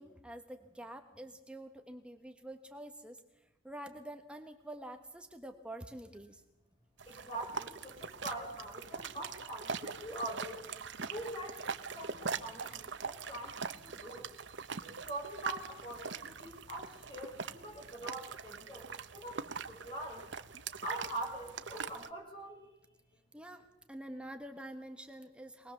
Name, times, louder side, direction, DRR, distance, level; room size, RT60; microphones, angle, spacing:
voice 1, 0.0-3.2 3.6-6.4 7.1-7.2 23.3-25.7, right 1 dB, 5° right, 6 dB, 1.2 m, -47 dB
sound 1, 7.0-22.1, right 5 dB, 70° right, 1.0 m, -43 dB
voice 2, 7.1-10.7 11.0-11.6 11.9-14.3 14.8-20.2 20.8-22.7, right 1 dB, 25° left, 0 dB, 5.6 m, -43 dB
23.5 x 19.5 x 7.0 m, 0.98 s
head